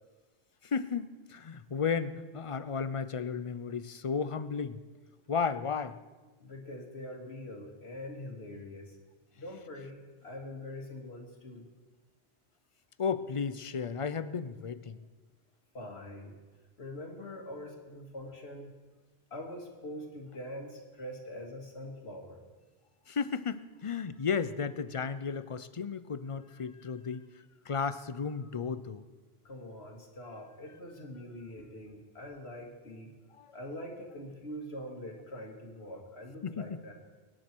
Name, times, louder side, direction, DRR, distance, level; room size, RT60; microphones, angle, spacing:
voice 1, 0.6-4.8 5.3-6.0 13.0-15.0 23.1-27.3 27.7-29.0 33.4-33.5 36.4-36.8, left 6 dB, 40° left, 14 dB, 0.5 m, -34 dB
voice 2, 6.4-9.0 9.4-11.7 15.7-16.4 16.8-18.7 19.3-22.4 29.4-33.1 33.5-36.9, left 1 dB, 80° left, 1 dB, 2.5 m, -44 dB
24.0 x 10.5 x 4.5 m, 1.3 s
omnidirectional pair, 1.1 m